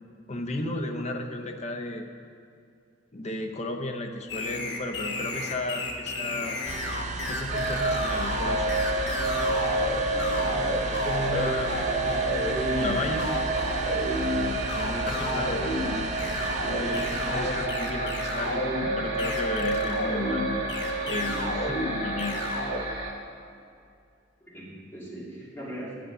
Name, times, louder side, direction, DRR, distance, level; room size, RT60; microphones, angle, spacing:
voice 1, 0.3-2.1 3.1-6.6 7.3-8.7 10.9-11.8 12.1-13.3 14.7-15.8 16.7-20.5 21.0-22.4, left 2 dB, 35° left, 3 dB, 0.7 m, -34 dB
sound 1, 4.3-22.8, left 1 dB, 65° left, 1.2 m, -32 dB
sound 2, 6.7-17.7, right 3 dB, 40° right, 0.5 m, -35 dB
sound 3, 7.5-23.1, right 2 dB, 85° right, 1.5 m, -30 dB
voice 2, 10.1-10.7 14.3-14.7 16.6-17.0 24.4-25.9, equal, 10° left, -8 dB, 2.7 m, -41 dB
9.0 x 7.6 x 5.4 m, 2.4 s
head